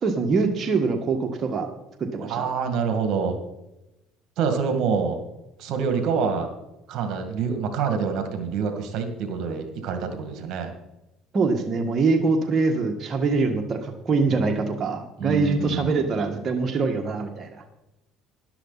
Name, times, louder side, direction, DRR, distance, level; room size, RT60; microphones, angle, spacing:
voice 1, 0.0-1.7 2.1-2.5 11.3-17.6, right 4 dB, 40° right, 3 dB, 1.6 m, -24 dB
voice 2, 2.2-3.4 4.4-5.2 5.6-6.5 6.9-10.7 15.2-16.1, right 6 dB, 65° right, 6 dB, 2.0 m, -26 dB
13.0 x 11.5 x 4.1 m, 0.94 s
cardioid pair, 105°, 0 cm